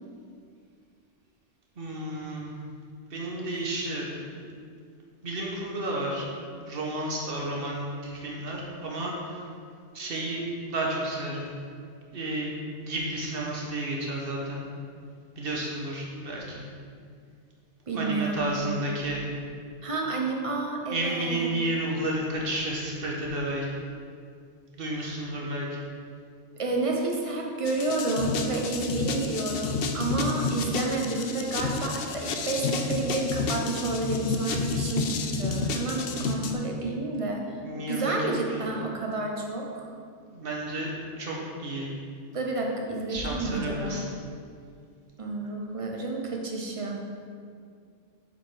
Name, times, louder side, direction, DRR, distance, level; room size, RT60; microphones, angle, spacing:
voice 1, 1.8-2.5 3.1-4.4 5.2-6.2 6.6-9.5 9.9-10.4 10.7-11.5 12.1-12.5 12.8-14.6 15.4-16.6 17.9-19.3 20.9-23.7 24.8-25.8 30.3-30.5 36.1-36.5 37.6-38.6 40.3-41.9 43.1-44.0, right 1 dB, 50° right, -2 dB, 1.3 m, -32 dB
voice 2, 17.9-18.9 19.8-21.5 24.9-25.2 26.6-39.9 42.3-44.1 45.2-47.0, right 3 dB, 30° right, 0 dB, 0.8 m, -30 dB
sound 1, 27.7-36.5, left 4 dB, 60° left, 0.7 m, -30 dB
7.5 x 4.5 x 4.6 m, 2.2 s
omnidirectional pair, 1.2 m